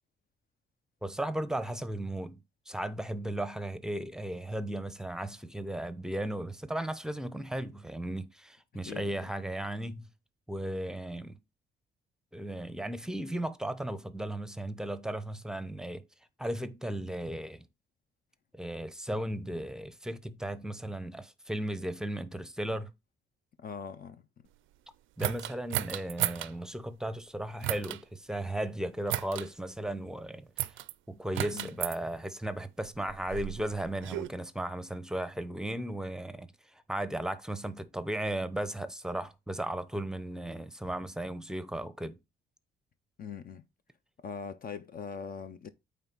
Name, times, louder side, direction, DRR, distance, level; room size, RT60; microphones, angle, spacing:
voice 1, 1.0-10.1 10.5-11.4 12.3-16.0 16.4-17.7 18.5-22.9 25.2-30.5 31.1-36.5 36.9-42.2, right 1 dB, 5° right, 0.7 m, -36 dB
voice 2, 23.6-24.2 31.5-31.7 43.2-43.6 44.2-45.7, left 6 dB, 45° left, 0.7 m, -41 dB
sound 1, 25.2-26.5 27.6-28.0 29.1-29.5 30.6-30.9 31.3-32.0 32.9-34.3, right 14 dB, 80° right, 0.5 m, -34 dB
8.6 x 3.6 x 4.0 m
cardioid pair, 90°, 20 cm